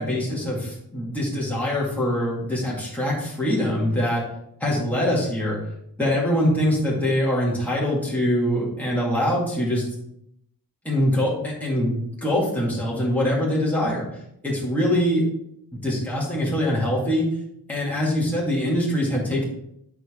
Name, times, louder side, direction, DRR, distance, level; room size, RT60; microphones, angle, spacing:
voice 1, 0.0-4.2 4.6-5.6 6.0-9.9 10.8-15.3 15.8-17.3 17.7-19.4, equal, 5° left, -6 dB, 2.3 m, -23 dB
9.7 x 4.9 x 3.7 m, 0.76 s
wide cardioid pair, 125°, 40 cm